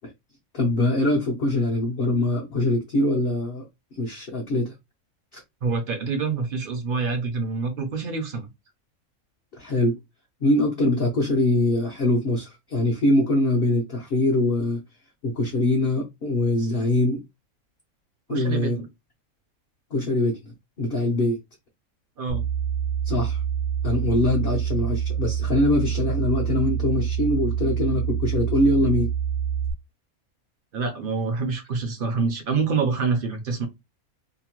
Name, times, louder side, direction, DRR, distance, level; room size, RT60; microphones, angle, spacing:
voice 1, 0.5-3.6 3.9-4.7 5.3-5.4 9.6-10.0 10.4-14.8 15.2-17.2 18.3-18.8 19.9-21.4 23.0-23.4 23.8-29.1, left 1 dB, 55° left, 0.7 m, -23 dB
voice 2, 5.6-8.5 18.3-18.9 22.2-22.4 30.7-33.7, right 4 dB, 55° right, 0.6 m, -26 dB
sound 1, 22.3-29.7, right 8 dB, 70° right, 1.1 m, -26 dB
2.8 x 2.1 x 2.9 m
omnidirectional pair, 1.5 m